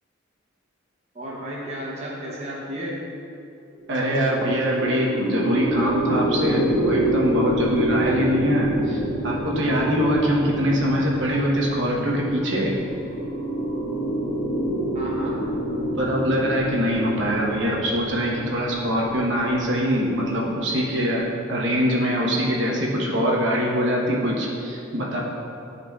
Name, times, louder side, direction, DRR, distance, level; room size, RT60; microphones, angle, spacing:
voice 1, 1.1-3.0 14.9-15.4, equal, 35° right, -5 dB, 0.8 m, -33 dB
sound 1, 3.8-21.2, right 1 dB, 25° left, 1.3 m, -27 dB
voice 2, 3.9-12.8 15.9-21.2 21.5-25.2, equal, 65° right, -3 dB, 1.1 m, -23 dB
12.0 x 4.0 x 2.4 m, 2.7 s
head